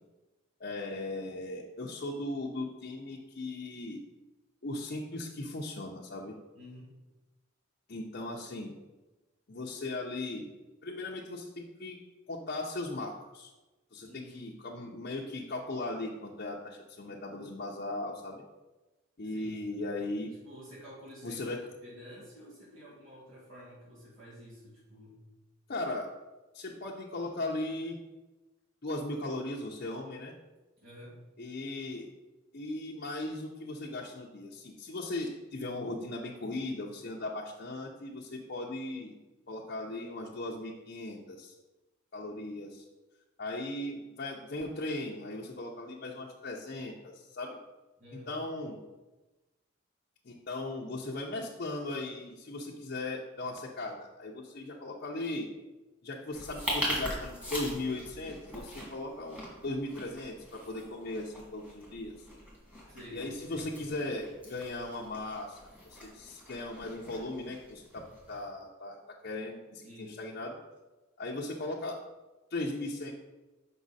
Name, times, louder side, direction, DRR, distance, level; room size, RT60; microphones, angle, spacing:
voice 1, 0.6-4.0 4.6-6.3 7.9-8.7 9.5-10.5 10.8-12.0 12.3-13.5 13.9-18.4 19.2-20.3 21.2-21.6 25.7-26.1 26.5-28.0 28.8-30.3 31.4-32.1 32.5-39.1 39.5-41.5 42.1-42.8 43.4-47.6 48.3-48.8 50.2-55.5 56.0-62.3 63.1-65.6 65.9-70.6 71.2-71.9 72.5-73.1, left 2 dB, 50° left, -4 dB, 0.7 m, -38 dB
voice 2, 6.5-6.9 14.0-14.4 19.2-19.9 20.2-25.2 30.8-31.2 48.0-48.3 62.9-63.7 69.8-70.2, equal, 85° right, -8 dB, 2.3 m, -50 dB
sound 1, 56.3-68.4, equal, 5° right, 2.0 m, -42 dB
6.2 x 5.5 x 4.1 m, 1.1 s
head